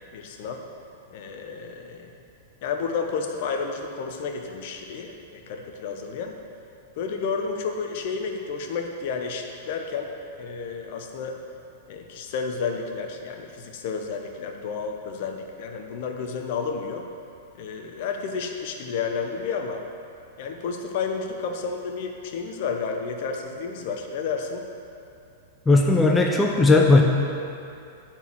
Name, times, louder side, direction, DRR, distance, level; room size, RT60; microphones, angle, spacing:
voice 1, 0.1-0.6 1.1-2.1 2.6-6.3 7.0-10.1 10.4-11.4 11.9-17.1 17.6-19.8 20.4-24.7, left 5 dB, 50° left, 4 dB, 0.9 m, -31 dB
voice 2, 25.7-27.0, left 3 dB, 15° left, 1 dB, 0.8 m, -17 dB
9.1 x 4.6 x 7.7 m, 2.5 s
figure-of-eight pair, 100°, 0 cm